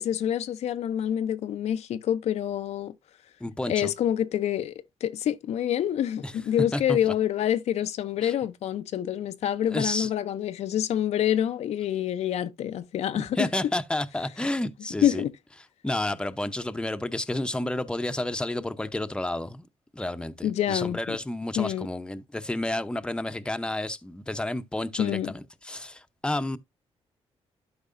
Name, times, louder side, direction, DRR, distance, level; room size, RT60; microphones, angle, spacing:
voice 1, 0.0-2.9 3.7-4.7 5.0-13.5 15.0-15.3 20.4-21.2 21.6-21.9 25.0-25.3, left 10 dB, 80° left, 0.6 m, -27 dB
voice 2, 3.4-3.9 6.2-6.3 6.7-7.1 8.2-8.3 9.7-10.1 13.1-15.2 15.8-19.7 19.9-26.6, left 1 dB, 10° left, 0.7 m, -31 dB
12.0 x 4.7 x 2.5 m
cardioid pair, 85°, 11 cm